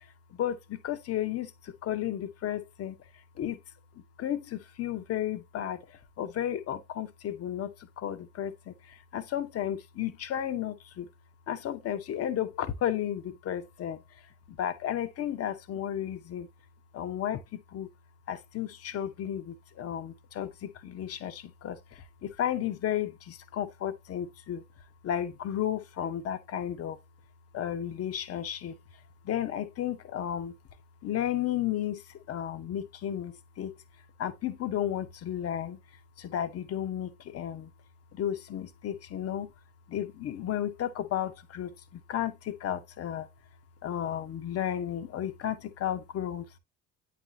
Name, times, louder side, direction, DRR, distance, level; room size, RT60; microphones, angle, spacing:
voice 1, 0.0-3.0 3.4-3.6 3.9-11.1 11.5-14.0 14.5-16.5 16.9-17.9 18.3-24.6 25.0-27.0 27.5-28.8 29.2-30.6 31.0-33.8 34.2-35.8 36.2-37.7 38.1-39.5 39.9-43.3 43.8-46.5, left 10 dB, 35° left, 0.7 m, -33 dB
8.9 x 4.2 x 2.7 m
figure-of-eight pair, 60°, 45 cm